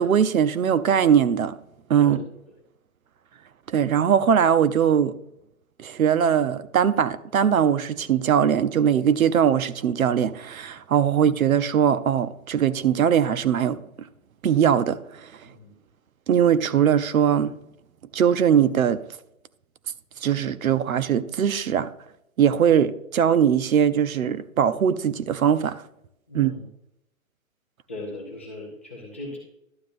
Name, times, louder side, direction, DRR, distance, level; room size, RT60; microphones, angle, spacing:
voice 1, 0.0-1.5 1.9-2.2 3.7-5.2 5.8-13.8 14.4-15.0 16.3-17.5 18.1-19.0 20.2-21.9 22.4-25.8 26.3-26.5, right 8 dB, 75° right, 0.7 m, -21 dB
voice 2, 15.4-15.8 26.3-26.6 27.9-29.4, left 2 dB, 10° left, 0.4 m, -38 dB
11.5 x 7.4 x 2.5 m
hypercardioid pair, 150°, 42 cm